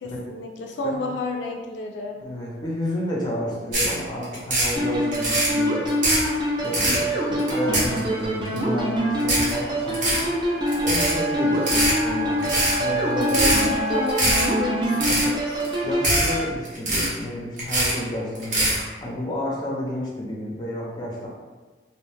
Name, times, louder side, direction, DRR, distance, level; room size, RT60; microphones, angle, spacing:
voice 1, 0.0-2.2 12.8-15.8, left 1 dB, 80° left, 2 dB, 0.3 m, -30 dB
voice 2, 2.2-5.8 6.6-10.2 10.8-13.6 14.9-15.3 15.8-18.7 19.0-21.3, equal, 25° left, -3 dB, 0.5 m, -30 dB
sound 1, 3.7-3.9 4.2-4.7 5.1-5.5 5.9-6.3 6.6-7.0 7.4-8.2 8.6-8.7 9.2-9.5 9.9-10.2 10.7-11.1 11.5-12.0 12.4-12.8 13.2-13.6 14.0-14.4 14.8-15.3 15.6-15.7 16.0-16.3 16.6-17.2 17.6-18.0 18.3-18.8, right 1 dB, 45° right, 0.8 m, -22 dB
sound 2, 4.8-16.5, equal, 25° right, 0.4 m, -25 dB
Wind instrument woodwind instrument, 10.5-15.1, left 1 dB, 80° right, 1.4 m, -31 dB
2.5 x 2.1 x 3.1 m, 1.3 s
head